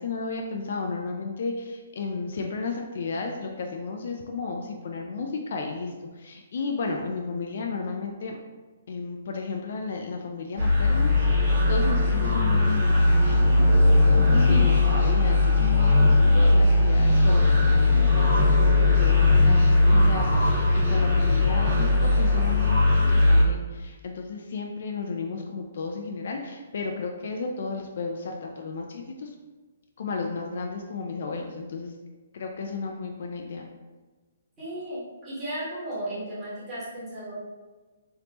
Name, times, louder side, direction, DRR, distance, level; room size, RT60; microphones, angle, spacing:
voice 1, 0.0-8.3 8.9-13.0 13.2-13.7 14.1-29.3 30.0-31.9 32.3-33.7, left 4 dB, 50° left, 2 dB, 0.3 m, -33 dB
sound 1, 10.6-23.4, left 2 dB, 40° right, 1.2 m, -19 dB
voice 2, 34.6-37.3, right 1 dB, 10° right, -12 dB, 1.1 m, -35 dB
3.4 x 2.7 x 2.9 m, 1.3 s
hypercardioid pair, 175°, 0 cm